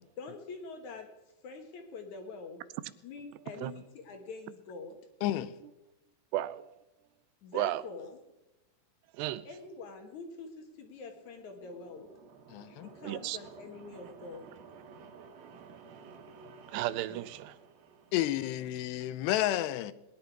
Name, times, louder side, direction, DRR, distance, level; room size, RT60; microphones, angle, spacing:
voice 1, 0.2-1.1 1.4-2.6 3.0-5.0 7.4-8.2 9.5-12.1 12.8-14.5 17.1-17.2 18.4-18.5, left 4 dB, 60° left, 2.3 m, -45 dB
voice 2, 5.2-5.5 12.5-12.9 18.1-19.9, left 13 dB, 90° left, 2.8 m, -31 dB
voice 3, 6.3-6.7 7.5-7.8 9.1-9.5 13.0-13.4 16.7-17.5, right 14 dB, 90° right, 2.8 m, -33 dB
sound 1, 11.0-18.9, right 5 dB, 70° right, 2.9 m, -53 dB
21.0 x 10.5 x 4.6 m
omnidirectional pair, 4.7 m